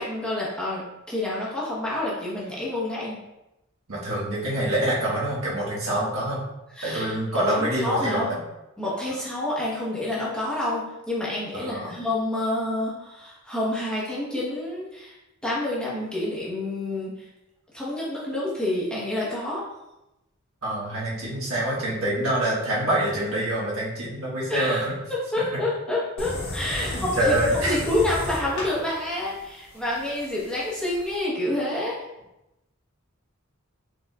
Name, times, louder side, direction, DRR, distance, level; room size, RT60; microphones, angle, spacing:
voice 1, 0.0-3.2 6.7-8.3 8.8-15.1 15.4-17.3 17.7-19.6 24.5-24.8 25.1-31.9, left 1 dB, 5° left, -7 dB, 1.0 m, -28 dB
voice 2, 3.9-6.4 6.8-8.4 11.5-11.9 20.6-24.9 26.8-27.8, right 1 dB, 80° right, -6 dB, 1.5 m, -26 dB
sound 1, 26.2-31.2, left 1 dB, 80° left, 1.3 m, -34 dB
4.7 x 4.0 x 2.3 m, 0.94 s
head